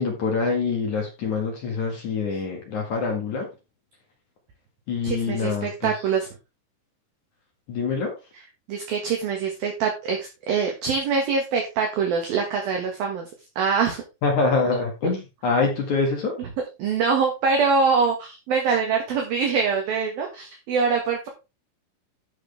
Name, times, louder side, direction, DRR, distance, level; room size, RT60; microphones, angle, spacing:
voice 1, 0.0-3.5 4.9-5.9 7.7-8.1 14.2-16.3, left 4 dB, 50° left, 2 dB, 2.5 m, -25 dB
voice 2, 5.0-6.3 8.7-13.3 13.6-14.0 16.4-16.5 16.8-21.3, right 5 dB, 60° right, 2 dB, 2.9 m, -24 dB
12.5 x 6.5 x 3.4 m, 0.27 s
omnidirectional pair, 5.5 m